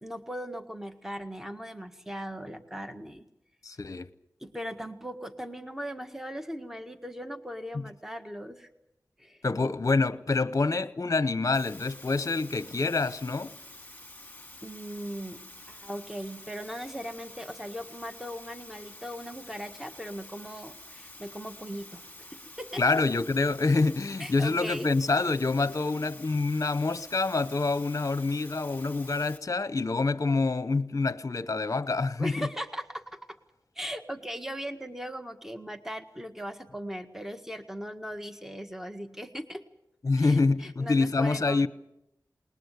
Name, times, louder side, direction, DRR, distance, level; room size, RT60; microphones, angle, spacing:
voice 1, 0.0-3.3 4.4-8.7 9.2-9.7 14.6-15.4 15.7-22.8 24.2-24.9 32.2-33.2 33.8-39.6 40.2-41.7, equal, 5° right, 1.7 m, -39 dB
voice 2, 3.6-4.1 9.4-13.5 22.8-32.5 40.0-41.7, left 3 dB, 50° left, 0.8 m, -26 dB
sound 1, 11.5-29.4, left 1 dB, 20° left, 2.7 m, -48 dB
20.0 x 20.0 x 8.2 m
cardioid pair, 40°, 7 cm